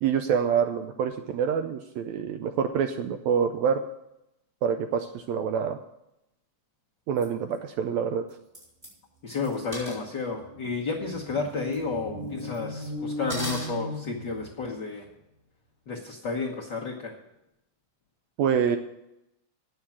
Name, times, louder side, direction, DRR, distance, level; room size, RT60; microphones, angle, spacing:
voice 1, 0.0-3.8 4.6-5.8 7.1-8.2 18.4-18.8, right 7 dB, 80° right, 7 dB, 1.7 m, -26 dB
sound 1, 7.2-7.3 7.5-7.6 8.3-8.4 8.5-8.9 9.3-10.0 11.1-11.2 11.5-11.8 12.4-12.9 13.3-13.7, equal, 15° right, 5.2 m, -37 dB
voice 2, 9.2-15.1 15.9-17.2, left 4 dB, 55° left, -3 dB, 1.3 m, -32 dB
sound 2, 9.4-9.5 9.8-14.8, left 1 dB, 50° right, 4.4 m, -38 dB
9.6 x 7.2 x 8.5 m, 0.86 s
omnidirectional pair, 3.7 m